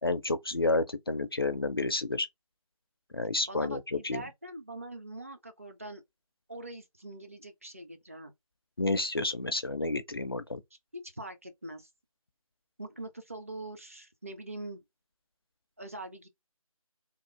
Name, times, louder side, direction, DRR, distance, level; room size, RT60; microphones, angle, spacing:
voice 1, 0.0-2.3 3.1-4.2 8.8-10.6, left 2 dB, 40° left, 0.4 m, -30 dB
voice 2, 3.5-6.0 6.5-8.3 10.9-11.9 12.8-14.8 15.8-16.3, right 2 dB, 25° right, 0.5 m, -43 dB
3.5 x 2.4 x 4.4 m
figure-of-eight pair, 160°, 19 cm